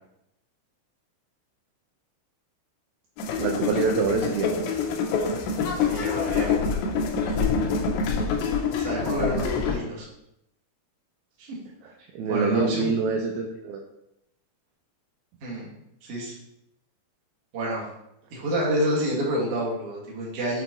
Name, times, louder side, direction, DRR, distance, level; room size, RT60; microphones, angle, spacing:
sound 1, 3.2-9.8, left 5 dB, 85° left, 2.9 m, -26 dB
voice 1, 3.4-4.5 12.1-13.8, right 4 dB, 80° right, 2 dB, 2.3 m, -25 dB
voice 2, 5.9-6.6 8.8-10.1 11.4-11.6 12.3-12.9 15.4-15.7 16.0-16.3 17.5-17.8 18.3-20.6, right 1 dB, 50° right, -5 dB, 2.0 m, -28 dB
8.3 x 3.9 x 3.0 m, 0.82 s
omnidirectional pair, 4.9 m